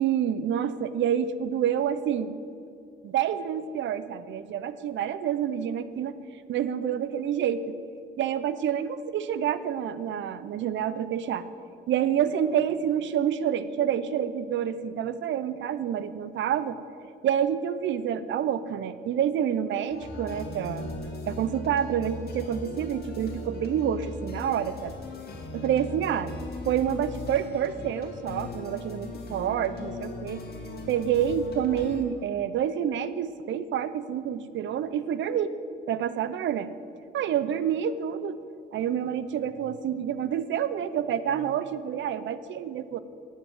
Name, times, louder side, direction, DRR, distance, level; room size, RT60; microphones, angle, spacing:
voice 1, 0.0-2.3 3.0-6.2 6.5-7.8 8.2-11.4 11.9-16.8 17.2-20.9 21.2-24.9 25.5-26.3 26.7-30.4 30.9-35.5 35.9-36.7 37.1-38.4 38.7-43.0, right 9 dB, 70° right, 14 dB, 0.6 m, -28 dB
sound 1, 19.9-32.0, left 2 dB, 55° left, 1.9 m, -38 dB
9.1 x 7.3 x 9.1 m, 2.4 s
cardioid pair, 90°, 20 cm